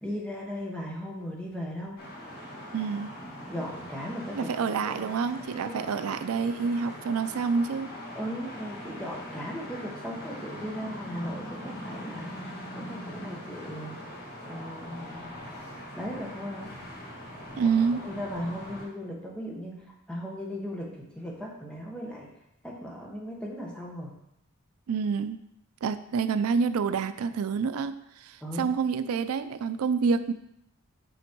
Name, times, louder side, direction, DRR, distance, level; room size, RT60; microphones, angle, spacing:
voice 1, 0.0-2.0 3.5-4.5 4.9-5.1 5.6-5.8 8.1-14.0 14.4-15.3 16.0-16.7 18.0-19.8 20.1-22.3 22.6-24.2 28.4-28.7, equal, 5° left, -2 dB, 1.3 m, -37 dB
sound 1, 2.0-18.8, equal, 45° left, 1.8 m, -41 dB
voice 2, 2.7-3.1 4.3-7.9 17.6-18.0 24.9-25.4 25.8-30.3, right 5 dB, 85° right, 12 dB, 0.4 m, -28 dB
6.2 x 5.2 x 4.5 m, 0.81 s
head